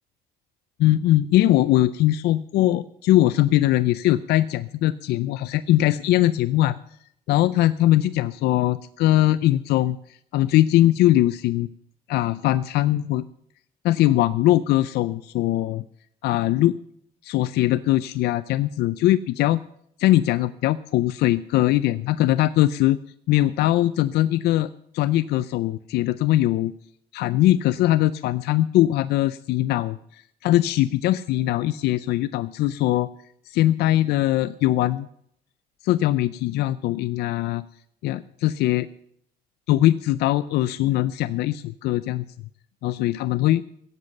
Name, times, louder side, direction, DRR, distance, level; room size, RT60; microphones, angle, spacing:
voice 1, 0.8-6.8 7.3-10.0 10.3-11.7 12.1-13.2 13.8-15.8 16.2-16.8 17.2-19.6 20.0-23.0 23.3-26.7 27.1-33.1 33.5-35.1 35.8-37.7 38.0-38.9 39.7-42.2 42.8-43.6, left 14 dB, 75° left, 15 dB, 0.5 m, -21 dB
16.0 x 8.0 x 6.6 m, 0.70 s
cardioid pair, 110°, 17 cm